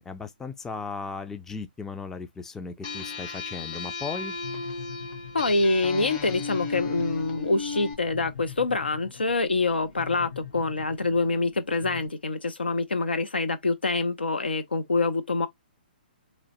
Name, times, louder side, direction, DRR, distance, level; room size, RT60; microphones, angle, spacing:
voice 1, 0.0-4.3, left 4 dB, 10° left, 0.3 m, -36 dB
sound 1, 2.8-7.9, left 4 dB, 35° left, 1.0 m, -35 dB
sound 2, 4.1-12.1, left 8 dB, 70° left, 1.1 m, -44 dB
voice 2, 5.3-15.5, left 3 dB, 85° left, 0.6 m, -26 dB
3.0 x 2.1 x 2.8 m
hypercardioid pair, 125°, 5 cm